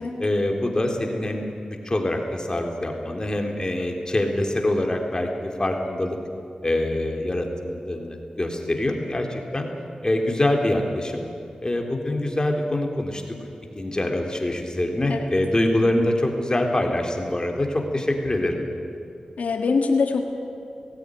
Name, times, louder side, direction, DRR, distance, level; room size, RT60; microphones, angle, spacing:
voice 1, 0.2-6.2 6.6-9.7 10.0-11.2 11.6-13.2 13.8-18.6, left 1 dB, 30° left, 2 dB, 3.5 m, -24 dB
voice 2, 19.4-20.2, left 4 dB, 80° left, 4 dB, 1.7 m, -23 dB
18.0 x 16.0 x 10.0 m, 2.6 s
cardioid pair, 45°, 2 cm